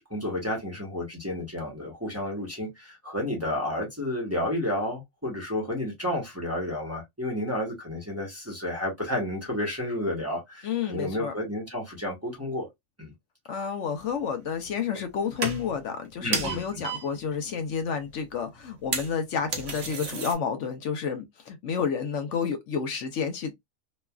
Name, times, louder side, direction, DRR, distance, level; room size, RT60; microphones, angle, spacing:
voice 1, 0.0-12.7 13.0-13.1 16.2-16.8, left 1 dB, 15° right, 0.9 m, -31 dB
voice 2, 10.6-11.3 13.5-23.5, left 6 dB, 70° left, 0.9 m, -30 dB
sound 1, 14.3-15.1 15.3-15.9 16.3-17.2 17.5-17.6 17.8-17.9 18.1-18.2 18.6-20.3, right 4 dB, 65° right, 1.2 m, -32 dB
3.1 x 2.3 x 2.3 m
omnidirectional pair, 1.4 m